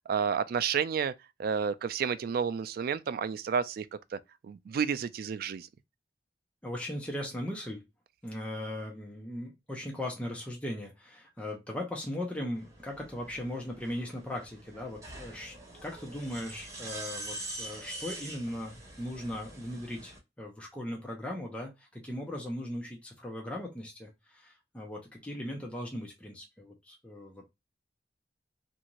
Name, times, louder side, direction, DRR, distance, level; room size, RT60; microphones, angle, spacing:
voice 1, 0.1-1.1 1.4-3.9 4.4-5.7, right 7 dB, 55° right, 0.3 m, -30 dB
voice 2, 6.6-7.8 8.2-15.5 15.8-27.5, left 1 dB, 5° left, 0.6 m, -38 dB
sound 1, 12.5-20.2, right 2 dB, 20° right, 1.4 m, -44 dB
2.6 x 2.4 x 2.9 m
head